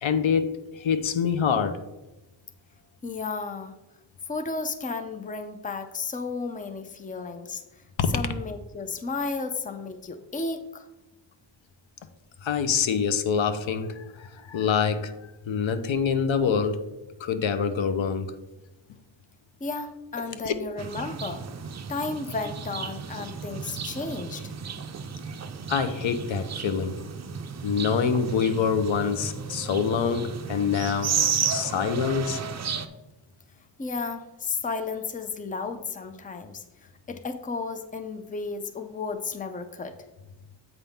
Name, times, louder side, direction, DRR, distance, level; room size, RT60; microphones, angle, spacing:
voice 1, 0.0-1.8 8.0-8.1 12.4-15.1 15.5-16.8 17.2-18.3 20.4-20.5 25.7-27.0 27.6-31.2 31.5-32.4, left 6 dB, 90° left, 0.7 m, -25 dB
voice 2, 3.0-3.8 4.3-7.6 8.1-10.9 19.6-21.4 21.9-24.5 33.8-39.9, left 4 dB, 20° left, 0.5 m, -33 dB
sound 1, 20.8-32.9, right 6 dB, 40° right, 0.4 m, -33 dB
8.0 x 5.6 x 3.5 m
wide cardioid pair, 175°, 45 cm